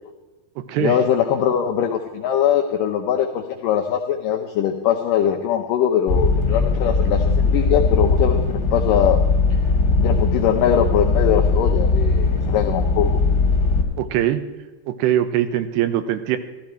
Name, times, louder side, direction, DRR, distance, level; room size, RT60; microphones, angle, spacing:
voice 1, 0.8-9.2 10.0-13.2, left 9 dB, 85° left, 4 dB, 1.9 m, -21 dB
sound 1, 6.1-13.8, left 3 dB, 45° left, 1.3 m, -19 dB
voice 2, 14.0-14.4 14.9-16.4, right 11 dB, 85° right, 11 dB, 2.9 m, -21 dB
15.5 x 13.0 x 4.4 m, 1.2 s
omnidirectional pair, 4.8 m